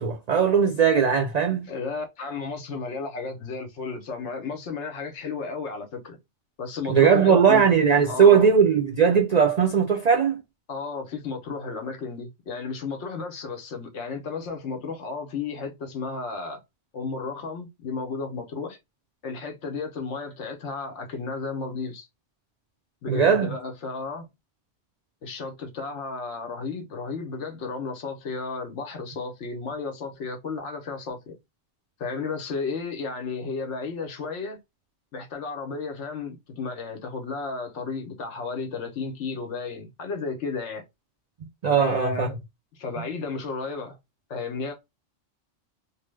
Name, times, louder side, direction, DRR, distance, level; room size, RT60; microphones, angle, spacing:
voice 1, 0.0-1.7 6.9-10.4 23.1-23.6 41.6-42.4, right 6 dB, 85° right, 0.3 m, -19 dB
voice 2, 1.7-6.2 6.6-7.6 8.1-8.5 10.7-16.6 16.9-18.8 19.2-22.1 23.0-24.3 25.2-31.4 32.0-34.6 35.1-40.8 41.7-42.3 42.7-44.0 44.3-44.7, left 4 dB, 70° left, 1.1 m, -33 dB
3.1 x 2.0 x 3.2 m
omnidirectional pair, 1.3 m